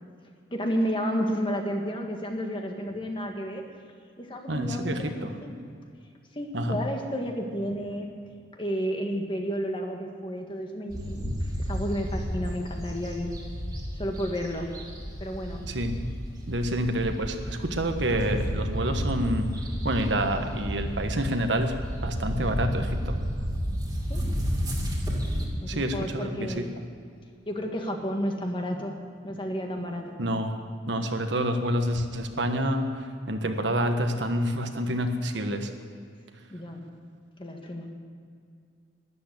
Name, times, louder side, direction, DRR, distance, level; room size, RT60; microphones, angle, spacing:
voice 1, 0.5-3.6 4.2-5.6 6.4-8.1 8.6-13.3 14.0-14.7 15.2-15.7 24.1-24.3 25.6-26.8 27.5-30.2 36.5-36.8 37.4-37.9, equal, 25° left, 2 dB, 1.7 m, -31 dB
voice 2, 4.5-5.3 6.5-6.8 15.7-16.0 16.5-19.5 19.8-21.7 22.0-23.1 25.7-26.7 30.2-30.5 30.9-35.7, right 1 dB, 70° right, 6 dB, 1.3 m, -28 dB
sound 1, 10.9-25.5, equal, 20° right, 2.7 m, -32 dB
12.5 x 11.0 x 8.4 m, 2.3 s
head